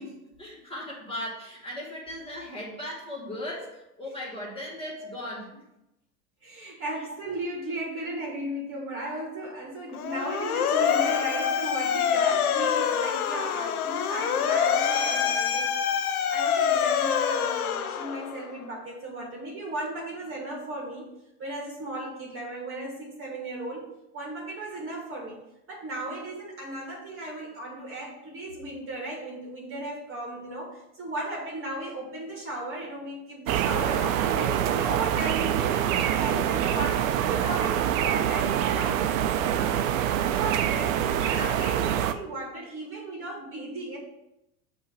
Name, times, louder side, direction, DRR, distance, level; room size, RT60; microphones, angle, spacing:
voice 1, 0.0-5.6 35.9-36.2 40.3-40.4 41.2-41.4, left 1 dB, 10° left, -4 dB, 2.3 m, -38 dB
voice 2, 6.4-15.7 16.3-21.1 21.4-23.8 24.1-25.4 25.7-39.9 40.4-44.0, right 2 dB, 30° right, -3 dB, 2.1 m, -36 dB
Motor vehicle (road) / Siren, 9.9-18.5, left 8 dB, 75° left, 0.8 m, -26 dB
sound 1, 33.5-42.1, right 10 dB, 65° right, 0.6 m, -25 dB
6.9 x 3.0 x 5.9 m, 0.88 s
hypercardioid pair, 95°, 45 cm